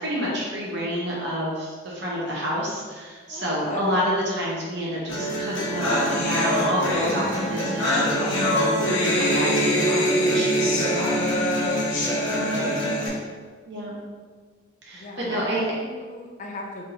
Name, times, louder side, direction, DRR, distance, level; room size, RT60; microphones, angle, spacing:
voice 1, 0.0-11.3 13.7-13.9 14.8-15.6, equal, 55° right, -4 dB, 1.1 m, -29 dB
voice 2, 3.3-3.8 12.6-13.2 14.9-16.9, left 1 dB, 35° left, 1 dB, 0.4 m, -37 dB
sound 1, 5.1-13.1, equal, 65° left, 1.0 m, -23 dB
3.6 x 2.9 x 3.8 m, 1.5 s
head